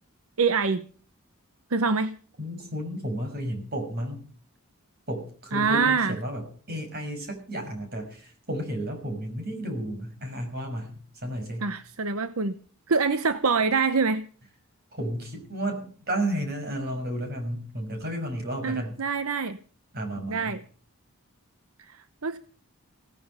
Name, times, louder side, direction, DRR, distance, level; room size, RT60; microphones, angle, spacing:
voice 1, 0.4-0.8 1.7-2.1 5.5-6.1 11.6-12.6 12.9-14.3 18.6-19.6 20.3-20.6 21.9-22.4, right 4 dB, 75° right, 12 dB, 0.9 m, -25 dB
voice 2, 2.4-4.2 5.1-11.7 14.9-18.9 19.9-20.5, right 1 dB, 45° right, 5 dB, 6.2 m, -32 dB
17.5 x 14.5 x 5.6 m, 0.43 s
head